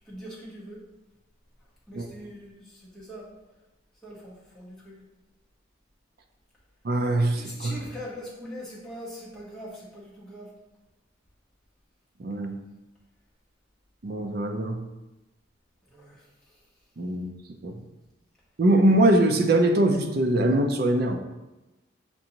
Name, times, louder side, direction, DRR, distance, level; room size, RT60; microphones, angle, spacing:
voice 1, 0.1-0.8 1.9-3.3 4.0-5.0 7.3-10.5 15.9-16.6, equal, ahead, -8 dB, 1.2 m, -42 dB
voice 2, 6.8-7.7 12.2-12.6 14.0-14.8 17.0-17.3 17.6-17.7 18.6-21.2, right 1 dB, 50° right, 5 dB, 0.4 m, -22 dB
6.7 x 2.5 x 2.9 m, 1.0 s
head